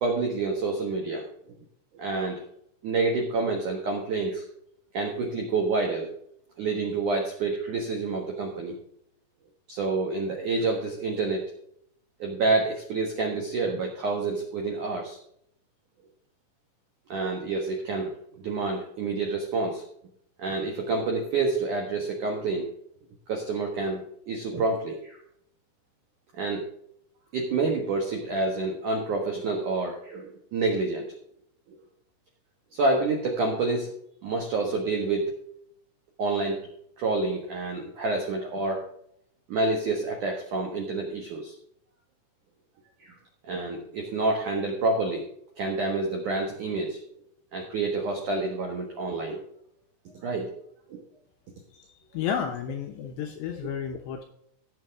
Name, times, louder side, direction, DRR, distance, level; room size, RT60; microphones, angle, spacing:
voice 1, 0.0-1.2 1.9-2.4 2.8-4.4 4.9-6.1 6.6-8.7 9.7-11.5 12.2-15.2 17.1-19.8 20.4-22.7 23.3-25.2 26.3-26.7 27.3-31.1 32.7-33.9 34.2-35.3 36.2-36.6 37.0-38.9 39.5-41.5 43.0-43.1 43.4-45.2 45.6-47.0 47.5-49.4 50.2-50.5 50.9-51.0, right 3 dB, 75° right, 1 dB, 1.8 m, -28 dB
voice 2, 52.1-54.2, left 8 dB, 75° left, 4 dB, 2.6 m, -31 dB
15.5 x 7.6 x 3.6 m, 0.70 s
omnidirectional pair, 5.9 m